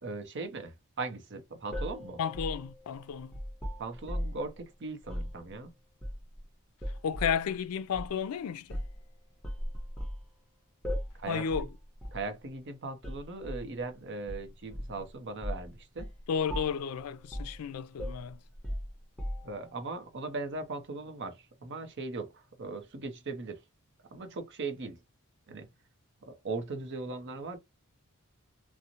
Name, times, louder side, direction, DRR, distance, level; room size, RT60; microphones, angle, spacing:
voice 1, 0.0-2.2 3.8-5.7 11.2-11.7 12.1-16.1 19.4-23.6 24.1-25.0 25.5-25.7 26.2-27.6, right 3 dB, 55° right, 0.6 m, -39 dB
sound 1, 1.7-4.5 5.0-5.3 6.0-6.4 6.8-7.4 7.9-8.1 8.7-9.0 9.4-10.2 10.8-11.2 11.5-11.7 12.0-12.2 13.0-13.7 14.3-15.0 15.4-15.7 16.0-16.2 16.5-16.9 17.3-17.6 18.0-19.7, equal, 5° left, 0.7 m, -37 dB
voice 2, 2.2-3.4 7.0-8.8 11.3-11.7 16.3-18.4, left 7 dB, 80° left, 0.4 m, -32 dB
2.6 x 2.0 x 2.8 m
head